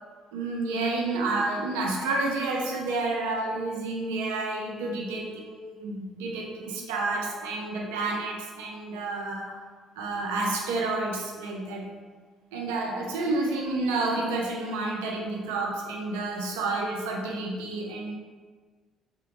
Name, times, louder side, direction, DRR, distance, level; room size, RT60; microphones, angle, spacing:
voice 1, 0.3-9.5 10.0-11.9 12.5-18.2, right 2 dB, 80° right, -1 dB, 0.4 m, -30 dB
2.7 x 2.1 x 2.8 m, 1.4 s
hypercardioid pair, 55°, 0 cm